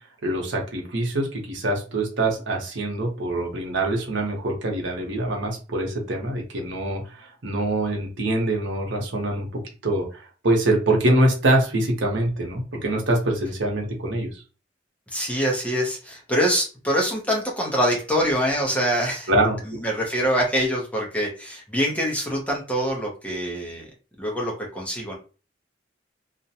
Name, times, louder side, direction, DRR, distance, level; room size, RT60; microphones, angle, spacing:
voice 1, 0.2-7.0 7.4-14.3 19.3-19.6, right 1 dB, 80° right, 1 dB, 0.8 m, -24 dB
voice 2, 15.1-19.3 19.6-23.9 24.2-25.2, equal, 5° left, -2 dB, 0.6 m, -24 dB
2.5 x 2.1 x 2.8 m, 0.34 s
head